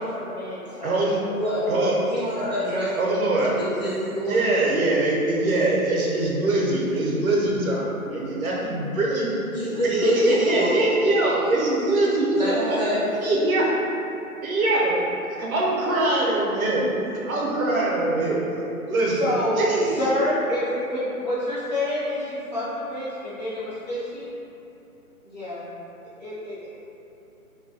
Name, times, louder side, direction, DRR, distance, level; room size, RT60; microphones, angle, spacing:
voice 1, 0.0-1.0 16.8-16.9 19.2-19.6 20.0-24.3 25.2-25.6 26.2-26.7, left 1 dB, 30° left, -13 dB, 0.6 m, -28 dB
voice 2, 0.8-1.2 1.7-2.0 3.0-3.5 4.2-9.3 9.8-12.8 13.2-13.8 14.4-15.0 15.3-16.8 17.3-18.4 18.9-20.1, right 2 dB, 65° right, -4 dB, 0.7 m, -23 dB
voice 3, 1.3-3.0 3.6-4.4 9.5-10.8 12.3-13.0, equal, 30° right, -12 dB, 0.4 m, -26 dB
2.3 x 2.1 x 2.6 m, 2.8 s
hypercardioid pair, 165°, 45 cm